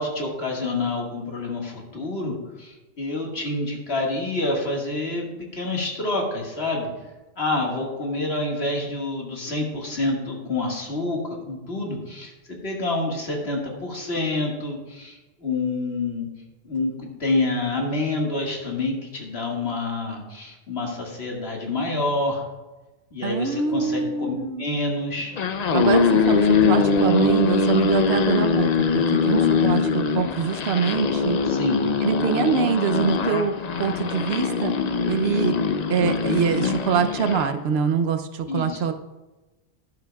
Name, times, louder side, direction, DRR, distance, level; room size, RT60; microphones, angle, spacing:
voice 1, 0.0-6.9 7.4-11.2 11.5-12.3 12.6-16.3 16.6-16.9 17.2-22.4 23.1-25.3 31.5-31.8 38.5-38.8, left 2 dB, 75° left, -1 dB, 2.1 m, -27 dB
voice 2, 23.2-24.7 25.7-28.7 28.9-31.4 32.0-34.7 35.1-35.6 35.9-38.9, right 6 dB, 75° right, 8 dB, 0.9 m, -24 dB
sound 1, 25.2-37.5, left 4 dB, 50° left, 0.6 m, -22 dB
12.0 x 11.0 x 2.3 m, 1.1 s
omnidirectional pair, 1.1 m